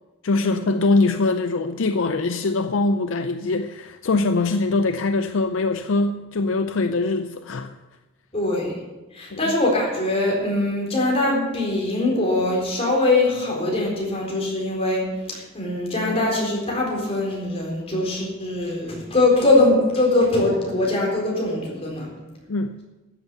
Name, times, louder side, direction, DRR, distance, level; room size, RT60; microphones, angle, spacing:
voice 1, 0.2-7.8 9.3-9.5 22.5-22.8, left 3 dB, 65° left, 9 dB, 0.5 m, -23 dB
voice 2, 8.3-8.7 9.1-22.1, left 2 dB, 30° left, -2 dB, 4.1 m, -22 dB
13.5 x 8.1 x 6.7 m, 1.1 s
head